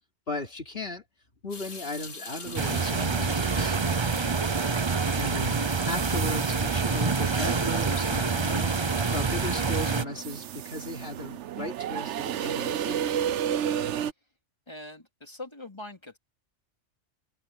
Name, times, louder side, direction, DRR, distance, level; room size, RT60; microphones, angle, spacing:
voice 1, 0.3-1.0 1.4-3.8 5.1-8.8 9.1-13.2, left 2 dB, 50° left, 3.5 m, -36 dB
Water tap faucet / Sink (filling or washing) / Drip, 1.5-5.6, left 4 dB, 80° left, 2.8 m, -45 dB
sound 1, 2.4-14.1, right 9 dB, 70° right, 1.0 m, -34 dB
sound 2, 2.5-10.0, right 4 dB, 30° right, 0.7 m, -26 dB
voice 2, 4.9-5.2 14.7-16.2, left 2 dB, 20° left, 3.6 m, -43 dB
omnidirectional pair, 1.3 m